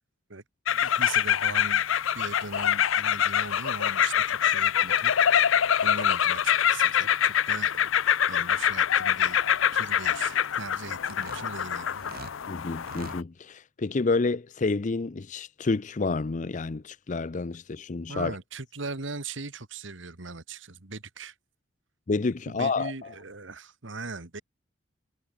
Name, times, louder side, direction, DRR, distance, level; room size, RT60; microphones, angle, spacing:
sound 1, 0.7-13.2, left 9 dB, 85° left, 0.6 m, -25 dB
voice 1, 0.8-1.8 2.1-5.5 5.8-7.9 8.3-9.4 9.7-12.1 18.1-21.3 22.5-24.4, right 3 dB, 75° right, 1.9 m, -39 dB
sound 2, 11.0-12.4 12.7-13.2, right 3 dB, 50° right, 1.5 m, -44 dB
voice 2, 12.5-18.4 22.1-22.9, left 3 dB, 40° left, 0.5 m, -29 dB
head